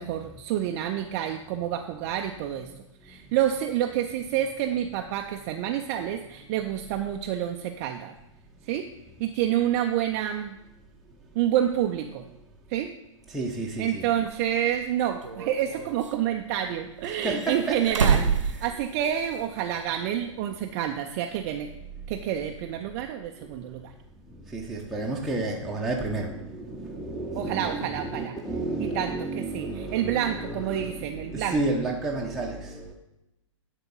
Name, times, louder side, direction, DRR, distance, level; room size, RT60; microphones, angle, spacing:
voice 1, 0.0-2.7 3.0-8.1 8.7-8.9 9.2-10.6 11.4-12.2 12.7-12.9 13.8-21.7 22.1-23.9 27.4-28.3 28.8-31.6, right 10 dB, 30° right, 4 dB, 0.4 m, -28 dB
voice 2, 13.3-14.0 17.2-17.8 23.4-23.5 24.5-32.9, right 2 dB, ahead, -4 dB, 0.8 m, -31 dB
sound 1, 14.2-14.3 15.2-16.1 17.0-19.4 19.7-19.8 21.4-21.5, right 6 dB, 70° right, 0.8 m, -27 dB
10.5 x 3.7 x 5.4 m, 0.91 s
figure-of-eight pair, 110°, 17 cm